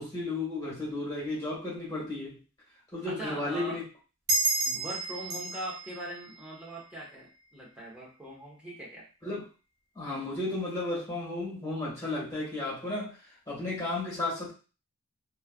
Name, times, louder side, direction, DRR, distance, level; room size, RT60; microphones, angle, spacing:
voice 1, 0.0-2.4 2.9-3.8 4.6-4.8 9.2-9.4 9.9-13.2 13.5-14.5, left 2 dB, 15° left, -8 dB, 1.6 m, -33 dB
voice 2, 3.1-3.8 4.7-9.1, right 1 dB, 5° right, -4 dB, 0.9 m, -41 dB
sound 1, 4.3-7.4, right 2 dB, 55° right, 0.7 m, -32 dB
3.2 x 2.3 x 2.3 m, 0.33 s
head